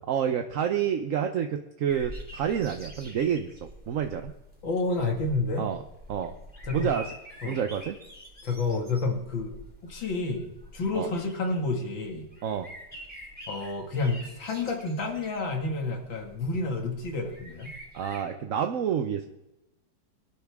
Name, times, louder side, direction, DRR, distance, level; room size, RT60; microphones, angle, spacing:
voice 1, 0.1-4.3 5.6-5.8 6.1-6.3 6.7-7.1 7.4-8.0 10.9-11.1 12.4-12.7 17.9-19.3, right 8 dB, 55° right, 6 dB, 1.0 m, -28 dB
sound 1, 1.9-18.2, equal, 5° right, 3.2 m, -46 dB
voice 2, 4.6-5.7 6.7-6.9 7.4-7.6 8.4-12.3 13.5-17.7, left 3 dB, 90° left, 2 dB, 2.9 m, -30 dB
24.0 x 12.0 x 3.6 m, 0.94 s
omnidirectional pair, 2.0 m